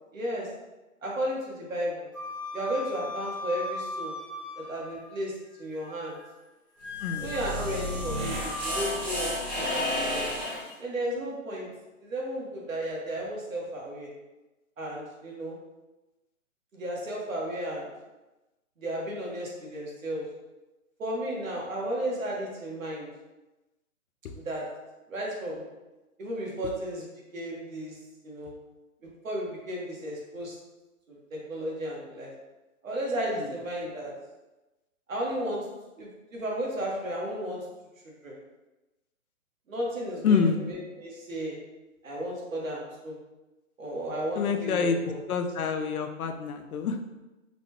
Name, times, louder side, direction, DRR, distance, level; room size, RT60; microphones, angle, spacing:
voice 1, 0.1-0.5 1.0-2.1 2.5-4.1 4.6-6.2 7.2-9.3 9.7-10.3 10.8-11.7 12.0-14.1 14.8-15.6 16.7-17.9 18.8-20.2 21.0-23.1 24.4-24.6 25.1-25.7 26.2-27.1 27.3-28.0 28.2-28.5 29.2-30.5 31.1-32.3 32.8-34.1 35.1-35.6 36.0-37.6 38.2-38.3 39.7-41.6 42.0-43.1 43.8-45.2, right 1 dB, 70° right, -3 dB, 1.3 m, -33 dB
Wind instrument woodwind instrument, 2.1-5.1 5.5-6.3 6.8-9.0, left 2 dB, 25° left, 0.5 m, -38 dB
sound 1, 6.9-10.7, left 1 dB, 25° right, 1.2 m, -32 dB
voice 2, 40.2-40.6 44.4-45.0 45.3-47.2, left 6 dB, 85° left, 6 dB, 0.6 m, -27 dB
4.0 x 2.2 x 2.9 m, 1.1 s
hypercardioid pair, 165°, 42 cm